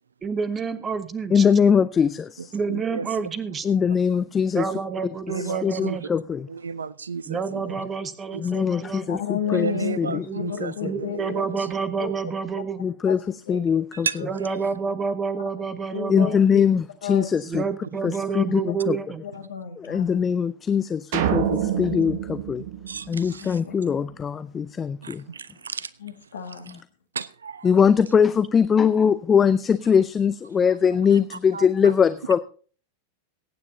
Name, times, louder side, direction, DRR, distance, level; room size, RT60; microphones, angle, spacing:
voice 1, 0.2-1.5 2.5-3.7 4.5-6.2 7.3-9.1 10.3-10.4 10.8-12.8 14.2-16.4 17.4-19.2, right 5 dB, 20° right, 1.2 m, -29 dB
voice 2, 1.3-2.5 3.6-4.7 5.4-6.5 8.4-10.9 12.8-14.3 16.1-17.6 18.0-19.0 19.8-22.6 23.1-25.2 26.7-26.8 27.6-32.4, left 7 dB, 20° left, 0.5 m, -22 dB
voice 3, 2.7-3.3 5.3-6.0 6.5-7.8 8.3-8.6 9.5-11.5 14.0-14.2 22.9-23.6 25.0-25.9 27.2-27.7 31.5-31.7, right 5 dB, 70° right, 0.5 m, -33 dB
voice 4, 9.1-11.2 12.0-12.1 13.1-13.2 13.5-13.6 14.2-14.3 15.9-16.6 17.0-17.3 19.2-20.2 21.4-21.8 23.3-24.0 26.0-26.7, left 8 dB, 65° left, 1.8 m, -32 dB
sound 1, 21.1-23.7, right 10 dB, 50° right, 1.1 m, -27 dB
22.5 x 9.4 x 2.7 m
figure-of-eight pair, 90°, 0 cm